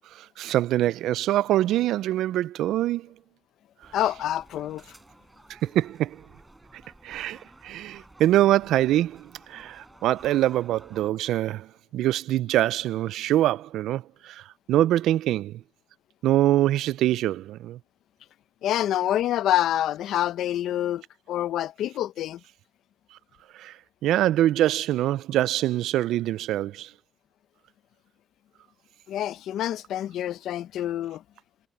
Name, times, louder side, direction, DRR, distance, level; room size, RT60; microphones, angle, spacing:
voice 1, 0.1-3.1 5.6-6.2 7.0-11.7 11.9-15.6 16.2-17.8 23.6-23.7 24.0-26.9, right 13 dB, 85° right, 0.4 m, -24 dB
sound 1, 3.8-11.1, right 2 dB, 15° right, 7.4 m, -53 dB
voice 2, 3.9-4.8 18.6-21.0 21.3-22.4 29.1-31.2, left 12 dB, 80° left, 0.8 m, -27 dB
cardioid pair, 90°, 0 cm